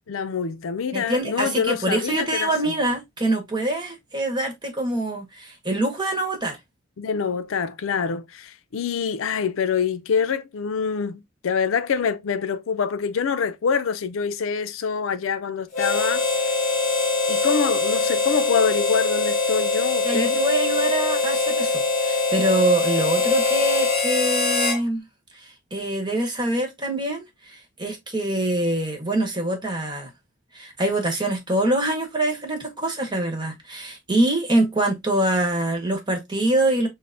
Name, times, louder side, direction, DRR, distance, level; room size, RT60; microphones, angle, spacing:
voice 1, 0.1-2.7 7.0-16.3 17.3-20.4, left 6 dB, 80° left, 0.4 m, -25 dB
voice 2, 0.9-6.6 20.0-25.0 25.7-30.1 30.5-36.9, right 1 dB, 20° right, 1.0 m, -24 dB
Harmonica, 15.7-24.8, left 3 dB, 35° left, 1.4 m, -23 dB
6.2 x 2.1 x 2.6 m
head